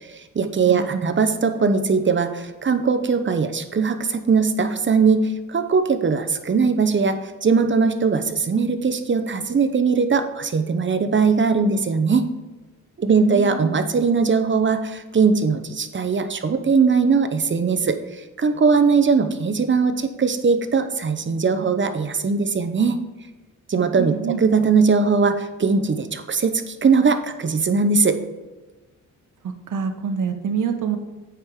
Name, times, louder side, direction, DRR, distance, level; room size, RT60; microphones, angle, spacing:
voice 1, 0.0-12.3 13.0-23.0 23.7-24.1 24.4-28.2, right 5 dB, 35° right, 8 dB, 0.8 m, -20 dB
voice 2, 0.7-1.1 13.1-13.7 24.0-24.4 29.4-31.0, right 6 dB, 70° right, 6 dB, 1.2 m, -26 dB
8.9 x 5.3 x 4.8 m, 1.2 s
cardioid pair, 95°, 32 cm